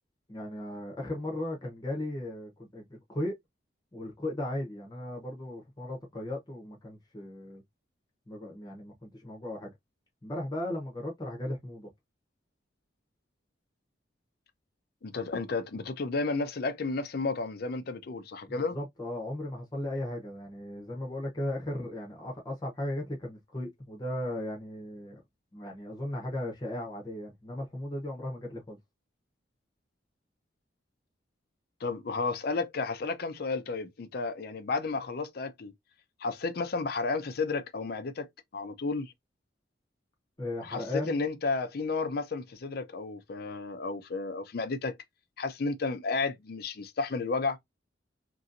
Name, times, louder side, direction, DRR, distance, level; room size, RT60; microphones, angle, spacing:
voice 1, 0.3-3.3 3.9-7.6 8.3-9.7 10.2-11.9 18.5-25.2 25.5-28.8 40.4-41.2, left 1 dB, 20° left, 0.8 m, -36 dB
voice 2, 15.0-18.8 31.8-35.7 36.2-38.3 38.5-39.1 40.6-44.9 45.4-47.6, left 3 dB, 55° left, 0.5 m, -32 dB
3.0 x 2.8 x 2.5 m
head